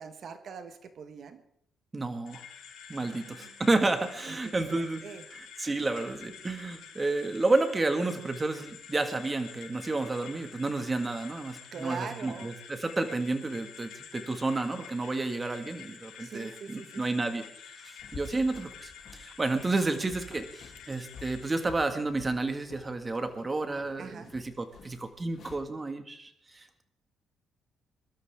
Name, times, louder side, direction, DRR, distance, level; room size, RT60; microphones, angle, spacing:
voice 1, 0.0-1.4 3.0-3.6 4.3-4.4 4.7-5.2 11.7-12.5 16.2-17.2 24.0-24.3, right 6 dB, 60° right, 9 dB, 1.6 m, -42 dB
voice 2, 1.9-2.4 2.9-5.0 5.3-17.4 17.8-26.8, right 2 dB, 25° right, 7 dB, 2.0 m, -31 dB
sound 1, 2.3-21.6, left 7 dB, 80° left, 3.5 m, -49 dB
sound 2, 18.0-25.6, left 4 dB, 55° left, 3.1 m, -51 dB
23.0 x 12.5 x 3.7 m, 0.69 s
cardioid pair, 90°, 0 cm